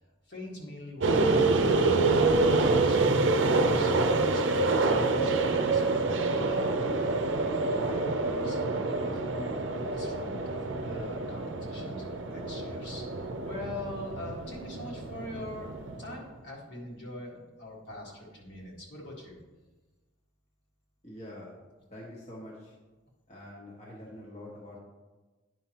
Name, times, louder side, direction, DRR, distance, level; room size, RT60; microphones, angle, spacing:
voice 1, 0.3-3.9 4.3-6.0 6.3-7.0 7.3-8.6 8.9-19.4, left 1 dB, 70° left, -3 dB, 1.8 m, -43 dB
sound 1, 1.0-16.2, right 3 dB, 80° right, 0.5 m, -27 dB
voice 2, 21.0-21.6 21.9-22.7 23.3-24.8, left 1 dB, 35° left, -5 dB, 1.1 m, -45 dB
9.4 x 5.5 x 2.9 m, 1.2 s
head